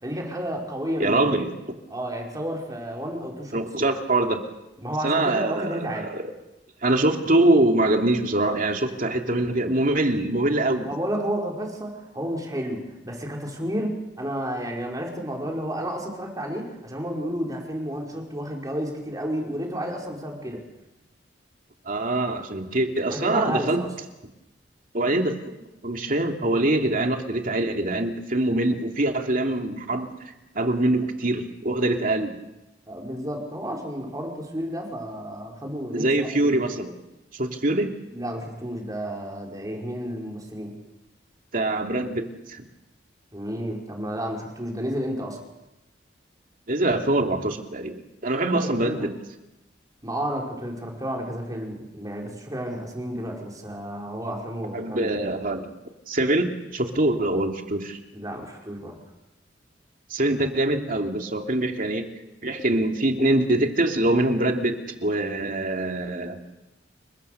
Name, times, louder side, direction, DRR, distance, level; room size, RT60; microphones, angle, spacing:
voice 1, 0.0-1.2 1.9-3.6 4.8-6.1 10.8-20.6 23.1-23.9 32.9-36.6 38.1-40.7 43.3-45.4 48.4-49.2 50.0-55.1 58.1-59.0, equal, 20° right, 0 dB, 5.5 m, -31 dB
voice 2, 1.0-1.5 3.5-4.4 5.0-6.2 6.8-10.9 21.9-23.8 24.9-25.4 25.8-32.4 35.9-36.9 37.3-37.9 41.5-42.6 46.7-49.1 54.7-55.7 56.1-58.0 60.1-62.1 62.4-66.4, right 2 dB, 50° right, 3 dB, 2.7 m, -24 dB
30.0 x 23.0 x 6.9 m, 0.97 s
head